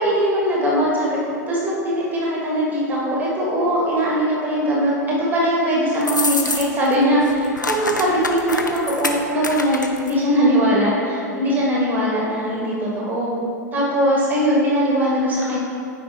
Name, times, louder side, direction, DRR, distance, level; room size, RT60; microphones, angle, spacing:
voice 1, 0.0-13.3 13.7-15.6, equal, 20° right, -5 dB, 1.6 m, -20 dB
sound 1, 6.0-6.9 7.2-10.1, left 3 dB, 85° left, 0.5 m, -26 dB
9.3 x 4.9 x 3.6 m, 2.6 s
figure-of-eight pair, 95°, 10 cm